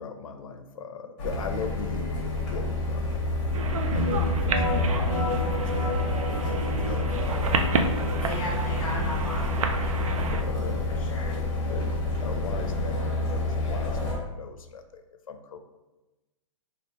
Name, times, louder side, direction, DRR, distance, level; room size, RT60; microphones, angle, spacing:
voice 1, 0.0-3.2 3.9-8.6 10.3-10.9 11.7-11.9 12.2-15.6, left 5 dB, 75° left, 7 dB, 0.5 m, -39 dB
sound 1, 1.2-14.2, left 2 dB, 25° left, 1.0 m, -29 dB
sound 2, 3.5-10.4, right 3 dB, 80° right, 0.5 m, -30 dB
sound 3, 3.9-13.5, left 2 dB, 15° right, 1.0 m, -34 dB
voice 2, 8.2-11.4, left 1 dB, 5° left, -6 dB, 0.4 m, -38 dB
3.3 x 2.3 x 4.0 m, 1.1 s
hypercardioid pair, 170°, 17 cm